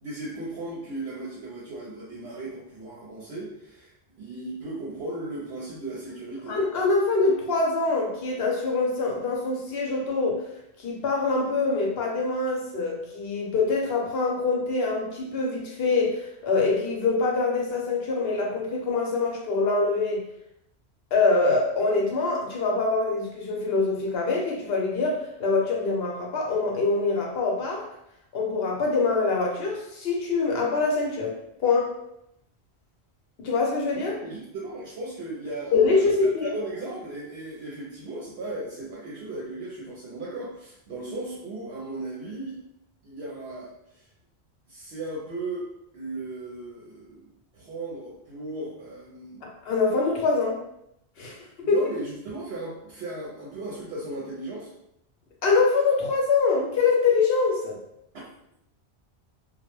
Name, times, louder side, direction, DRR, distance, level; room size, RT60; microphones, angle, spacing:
voice 1, 0.0-6.6 33.9-42.6 43.0-44.1 44.7-45.7 45.9-47.3 47.5-49.5 51.6-54.7 58.1-58.2, right 2 dB, 75° right, -5 dB, 0.8 m, -36 dB
voice 2, 6.5-10.4 10.8-20.2 21.1-27.8 28.3-31.3 31.6-31.9 33.4-34.2 35.7-36.5 49.4-50.6 51.2-51.4 51.7-51.8 55.4-57.8, left 3 dB, 65° left, -1 dB, 0.8 m, -24 dB
2.2 x 2.0 x 3.0 m, 0.77 s
omnidirectional pair, 1.1 m